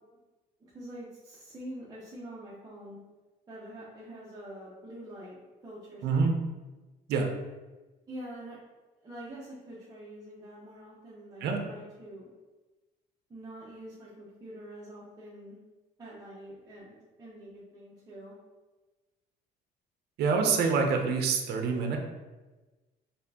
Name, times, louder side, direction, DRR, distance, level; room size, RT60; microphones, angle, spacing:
voice 1, 0.6-3.0 3.5-5.3 5.6-6.3 8.1-8.6 9.0-12.3 13.3-15.6 16.0-18.4, right 1 dB, 25° right, -8 dB, 0.9 m, -45 dB
voice 2, 6.0-6.3 7.1-7.3 11.4-11.6 20.2-22.0, right 5 dB, 75° right, 3 dB, 0.6 m, -26 dB
4.1 x 3.4 x 2.8 m, 1.2 s
cardioid pair, 110°, 17 cm